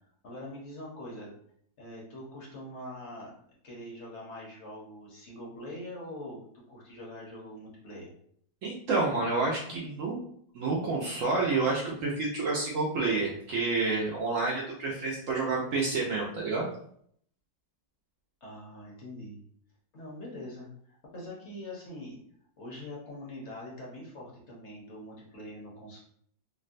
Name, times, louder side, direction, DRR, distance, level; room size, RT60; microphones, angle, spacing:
voice 1, 0.2-1.3 1.8-3.3 3.6-6.4 6.7-8.1 18.4-19.4 19.9-22.2 22.6-26.0, left 1 dB, 55° left, -4 dB, 0.9 m, -43 dB
voice 2, 8.6-10.2 10.5-16.7, right 3 dB, 75° right, -3 dB, 0.7 m, -29 dB
3.7 x 2.1 x 2.5 m, 0.65 s
omnidirectional pair, 2.0 m